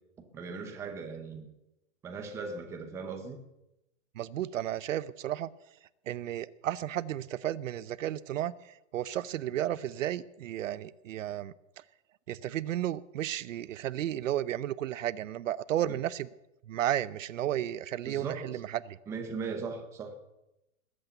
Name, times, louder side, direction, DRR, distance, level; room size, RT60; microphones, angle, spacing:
voice 1, 0.3-1.5 2.0-3.4 18.1-18.5 19.1-20.1, right 4 dB, 5° right, 0.8 m, -38 dB
voice 2, 4.1-5.5 6.1-11.5 12.3-16.3 16.7-19.0, right 12 dB, 70° right, 0.7 m, -33 dB
20.5 x 8.7 x 8.0 m
supercardioid pair, 175°, 40 cm